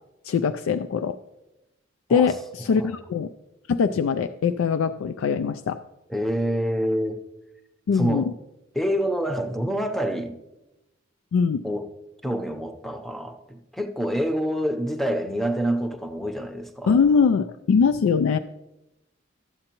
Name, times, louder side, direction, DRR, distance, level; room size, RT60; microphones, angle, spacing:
voice 1, 0.2-1.2 2.1-3.3 3.7-5.8 7.9-8.3 11.3-11.6 16.9-18.4, left 6 dB, 85° left, 10 dB, 0.3 m, -22 dB
voice 2, 6.1-7.2 7.9-8.3 8.7-10.3 11.6-11.9 12.2-17.0, equal, ahead, 5 dB, 0.6 m, -27 dB
12.5 x 7.7 x 2.9 m, 0.93 s
head